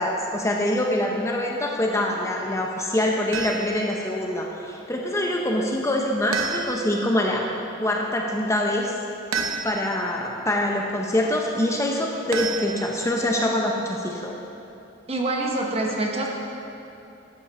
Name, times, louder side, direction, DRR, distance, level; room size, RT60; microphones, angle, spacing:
voice 1, 0.0-7.5 7.8-8.9 9.3-14.3, left 1 dB, 15° left, 0 dB, 0.7 m, -25 dB
sound 1, 3.3-3.9 6.3-7.0 9.3-10.0 12.3-13.2, right 5 dB, 80° right, 0.9 m, -30 dB
voice 2, 15.1-16.3, right 2 dB, 30° right, 0 dB, 1.1 m, -25 dB
12.0 x 8.3 x 4.2 m, 2.8 s
head